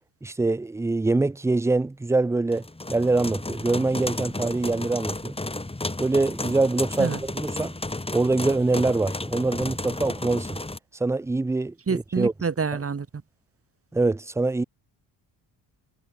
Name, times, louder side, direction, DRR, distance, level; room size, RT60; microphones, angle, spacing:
voice 1, 0.2-5.3 6.0-7.8 8.1-10.6 11.0-12.3 13.9-14.6, right 3 dB, 5° right, 0.4 m, -24 dB
sound 1, 2.5-10.8, left 2 dB, 10° left, 3.9 m, -33 dB
voice 2, 11.9-13.1, right 5 dB, 30° right, 2.6 m, -27 dB
cardioid pair, 90°, 46 cm